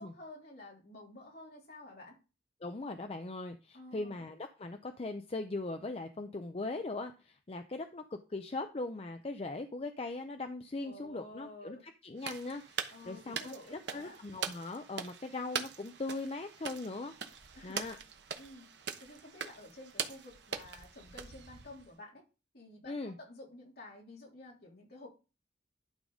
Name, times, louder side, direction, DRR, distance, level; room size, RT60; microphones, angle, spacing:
voice 1, 0.0-2.2 3.7-4.2 10.8-11.8 12.9-14.2 17.5-17.8 18.4-18.7 19.0-22.2 22.5-25.1, left 1 dB, 60° left, -3 dB, 3.4 m, -51 dB
voice 2, 2.6-11.8 12.0-13.5 13.9-17.1 17.6-18.0 22.9-23.2, left 2 dB, 35° left, 7 dB, 0.5 m, -40 dB
sound 1, 12.2-21.9, right 7 dB, 70° right, 1.0 m, -42 dB
11.5 x 3.9 x 5.0 m, 0.32 s
head